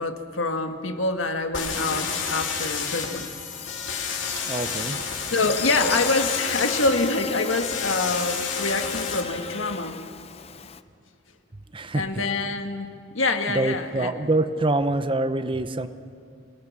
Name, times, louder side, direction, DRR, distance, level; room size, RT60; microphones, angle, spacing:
voice 1, 0.0-3.3 5.3-10.0 11.9-14.1, left 3 dB, 90° left, 6 dB, 1.6 m, -26 dB
sound 1, 1.5-9.2, left 6 dB, 70° left, 2.9 m, -30 dB
Buzz, 3.5-10.8, left 5 dB, 30° left, 0.6 m, -35 dB
voice 2, 4.5-5.0 11.7-12.2 13.5-15.9, right 2 dB, 25° right, 11 dB, 0.8 m, -25 dB
27.5 x 19.0 x 6.0 m, 2.5 s
head